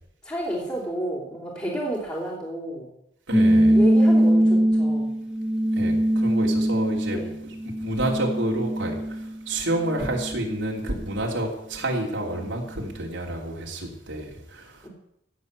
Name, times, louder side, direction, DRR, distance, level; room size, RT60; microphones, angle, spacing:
voice 1, 0.2-2.9 3.7-5.1 7.1-7.3 14.8-14.9, right 1 dB, 15° left, -6 dB, 3.5 m, -31 dB
sound 1, 3.3-9.4 9.8-11.1, right 1 dB, 5° right, 1.0 m, -22 dB
voice 2, 3.3-3.8 5.7-7.5 7.8-14.9, right 1 dB, 80° right, -1 dB, 3.2 m, -29 dB
16.5 x 7.5 x 8.2 m, 0.79 s
head